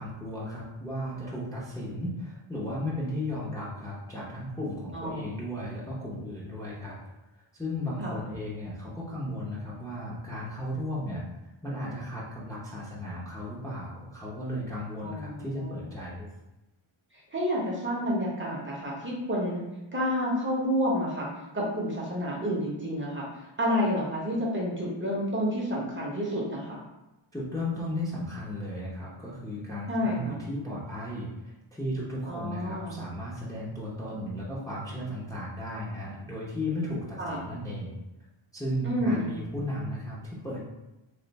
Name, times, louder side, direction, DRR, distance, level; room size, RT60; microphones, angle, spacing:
voice 1, 0.0-7.0 7.5-11.3 11.6-16.3 27.3-38.0 38.5-40.7, left 1 dB, 5° left, -7 dB, 0.6 m, -35 dB
voice 2, 4.9-5.3 8.0-8.1 15.0-15.8 17.3-19.6 19.9-21.3 21.5-23.2 23.6-26.8 29.9-30.4 32.2-33.0 37.2-37.4 38.8-39.4, equal, 25° right, -4 dB, 0.8 m, -29 dB
3.4 x 2.4 x 4.0 m, 0.99 s
wide cardioid pair, 165°, 49 cm